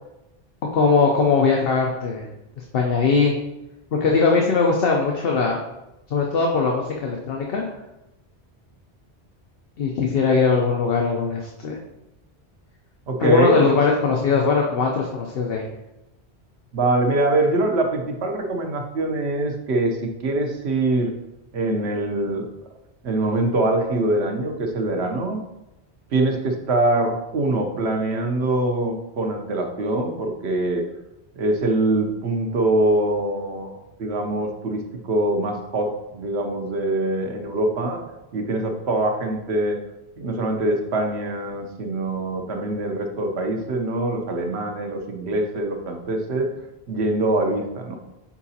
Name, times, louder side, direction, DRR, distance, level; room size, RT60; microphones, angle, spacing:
voice 1, 0.7-2.3 2.6-3.3 4.0-5.6 6.1-7.6 9.8-11.8 13.2-15.6, left 4 dB, 65° left, 0 dB, 0.9 m, -20 dB
voice 2, 13.1-13.8 16.7-21.1 21.5-22.5 23.0-25.4 26.1-30.8 31.3-38.0 38.3-39.8 40.2-46.5 46.9-48.0, right 2 dB, 80° right, 3 dB, 1.1 m, -23 dB
7.1 x 4.8 x 2.8 m, 0.94 s
omnidirectional pair, 1.1 m